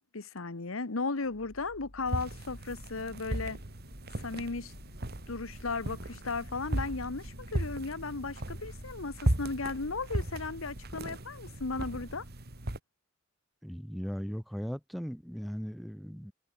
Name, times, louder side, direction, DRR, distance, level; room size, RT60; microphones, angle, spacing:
voice 1, 0.0-3.6 4.2-4.7 5.3-12.2, left 3 dB, 90° left, 1.3 m, -36 dB
sound 1, 1.1-11.2, left 1 dB, 70° left, 3.7 m, -53 dB
sound 2, 2.1-12.8, right 1 dB, 50° right, 2.5 m, -37 dB
voice 2, 13.6-16.3, equal, ahead, 3.5 m, -38 dB
head